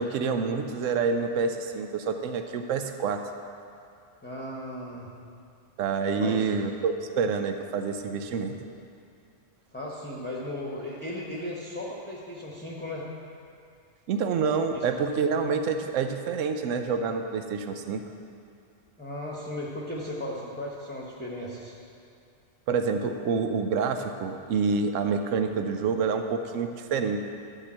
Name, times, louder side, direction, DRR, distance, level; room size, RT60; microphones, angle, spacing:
voice 1, 0.0-3.2 5.8-8.5 14.1-18.0 22.7-27.2, right 5 dB, 85° right, 6 dB, 1.0 m, -27 dB
voice 2, 4.2-5.1 6.2-6.5 9.7-13.1 14.7-14.9 19.0-21.7, left 1 dB, 10° left, -4 dB, 0.9 m, -36 dB
11.5 x 4.9 x 7.4 m, 2.5 s
omnidirectional pair, 1.3 m